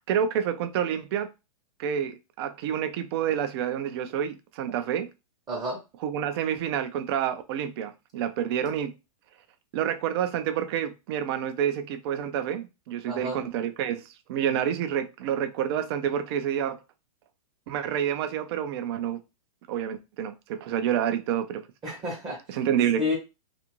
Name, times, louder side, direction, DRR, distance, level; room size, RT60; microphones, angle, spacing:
voice 1, 0.1-1.3 1.8-5.1 6.0-8.9 9.7-16.8 17.7-19.2 19.7-21.7 22.5-23.0, right 9 dB, 45° right, 0.4 m, -28 dB
voice 2, 5.5-5.8 13.0-13.5 21.8-22.6 23.0-23.2, left 2 dB, 20° right, 0.8 m, -31 dB
2.5 x 2.5 x 2.9 m
hypercardioid pair, 135°, 19 cm